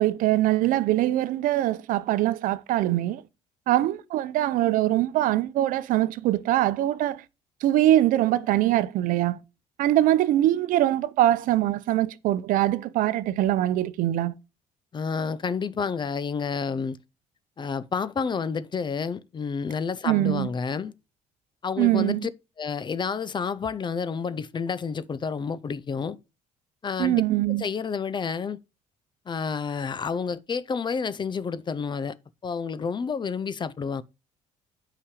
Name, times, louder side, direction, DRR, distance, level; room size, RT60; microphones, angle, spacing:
voice 1, 0.0-3.2 3.7-7.2 7.6-9.4 9.8-14.3 20.1-20.5 21.8-22.3 27.0-27.6, right 14 dB, 75° right, 0.7 m, -23 dB
voice 2, 14.9-17.0 17.6-20.9 21.6-22.3 22.6-26.2 26.8-27.2 27.5-28.6 29.3-32.2 32.4-34.0, left 5 dB, 35° left, 0.6 m, -29 dB
8.6 x 5.0 x 5.0 m
cardioid pair, 90°, 14 cm